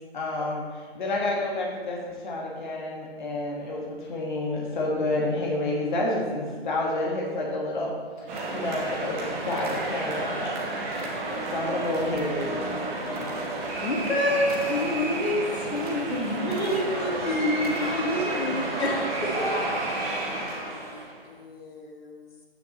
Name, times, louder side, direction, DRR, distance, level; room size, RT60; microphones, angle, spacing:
voice 1, 0.1-10.6 11.3-12.7, left 2 dB, 50° left, -3 dB, 1.7 m, -29 dB
sound 1, 8.3-21.2, right 2 dB, 15° right, 0.9 m, -31 dB
sound 2, 8.3-8.9 9.4-10.3 10.9-11.5 11.8-12.6 13.1-13.8 14.4-15.2 15.6-16.2 16.4-17.2 17.5-18.2, right 3 dB, 35° right, 1.1 m, -42 dB
voice 2, 13.8-18.9, left 1 dB, 90° left, -1 dB, 1.7 m, -27 dB
voice 3, 16.6-18.3 18.6-21.0 21.2-22.3, left 2 dB, 65° left, -1 dB, 2.3 m, -40 dB
9.1 x 9.1 x 3.0 m, 1.5 s
hypercardioid pair, 160°, 32 cm